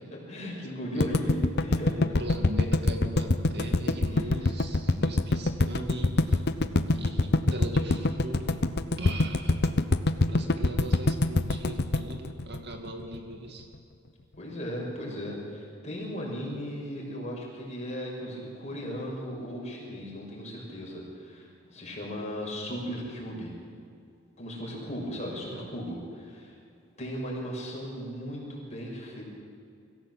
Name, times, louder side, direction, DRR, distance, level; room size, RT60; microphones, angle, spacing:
voice 1, 0.1-2.2 4.1-4.6 14.4-23.5 24.4-26.5 27.0-29.2, equal, 35° left, -2 dB, 6.5 m, -36 dB
voice 2, 0.9-1.2 2.0-6.5 6.9-8.6 9.0-9.8 10.3-13.7 25.4-25.7, right 1 dB, 55° right, 3 dB, 2.3 m, -39 dB
sound 1, 1.0-13.2, left 2 dB, 55° left, 0.9 m, -25 dB
24.5 x 16.0 x 7.7 m, 2.4 s
head